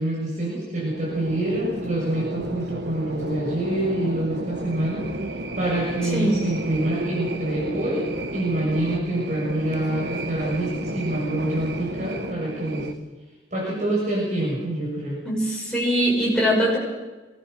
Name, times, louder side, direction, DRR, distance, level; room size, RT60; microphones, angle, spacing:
voice 1, 0.0-5.1 5.5-8.1 8.3-12.9 13.5-15.2, right 1 dB, 40° right, -4 dB, 6.8 m, -26 dB
sound 1, 0.9-12.9, right 1 dB, 75° right, 1.4 m, -33 dB
voice 2, 6.0-6.4 15.3-16.8, equal, 5° left, -4 dB, 7.2 m, -22 dB
23.5 x 20.0 x 6.7 m, 1.2 s
head